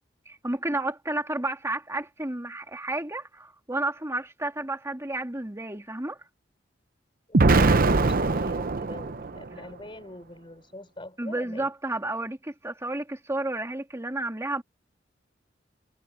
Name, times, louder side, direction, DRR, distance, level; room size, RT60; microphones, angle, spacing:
voice 1, 0.3-6.2 11.2-14.6, right 2 dB, 15° right, 2.4 m, -31 dB
voice 2, 7.3-11.7, left 1 dB, 25° left, 6.2 m, -43 dB
Explosion, 7.3-9.5, right 3 dB, 50° right, 0.8 m, -21 dB
head